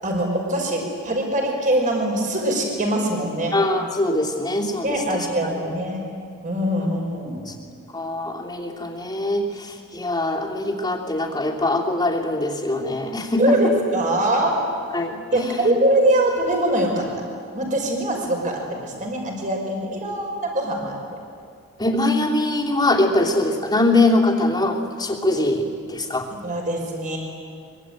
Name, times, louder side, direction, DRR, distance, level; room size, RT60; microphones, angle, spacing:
voice 1, 0.0-3.6 4.8-6.0 6.4-7.4 13.4-14.6 15.3-17.1 17.5-21.0 26.4-27.2, right 1 dB, 35° right, 1 dB, 5.4 m, -23 dB
voice 2, 3.5-5.3 7.5-7.6 7.9-13.6 14.9-15.7 21.8-26.3, left 2 dB, 20° left, -2 dB, 3.0 m, -22 dB
24.5 x 24.0 x 9.1 m, 2.1 s
head